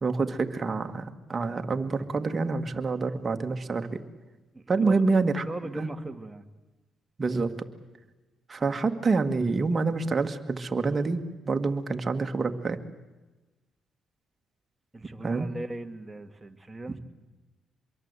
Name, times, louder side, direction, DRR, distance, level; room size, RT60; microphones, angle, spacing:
voice 1, 0.0-4.0 4.7-5.5 5.7-5.9 7.2-7.5 8.5-11.2 11.5-12.8 15.2-15.5 16.9-17.0, right 4 dB, 30° right, 5 dB, 1.9 m, -27 dB
voice 2, 4.5-5.0 5.4-6.5 14.9-17.0, right 1 dB, 15° right, 6 dB, 1.9 m, -39 dB
25.0 x 22.5 x 8.2 m, 1.1 s
cardioid pair, 90°, 0 cm